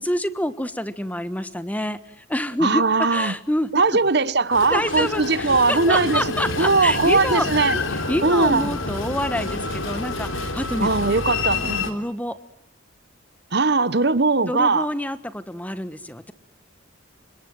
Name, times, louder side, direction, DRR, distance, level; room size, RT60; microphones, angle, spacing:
voice 1, 0.0-3.7 4.6-7.5 7.7-10.9 11.8-12.4 14.4-16.3, left 1 dB, 5° left, 1.4 m, -27 dB
voice 2, 2.6-3.3 3.7-6.2 6.6-7.8 8.2-8.7 10.8-11.9 13.5-14.9, right 3 dB, 55° right, 1.2 m, -20 dB
Train, 4.5-11.9, left 3 dB, 75° left, 4.0 m, -28 dB
29.5 x 26.0 x 7.9 m
head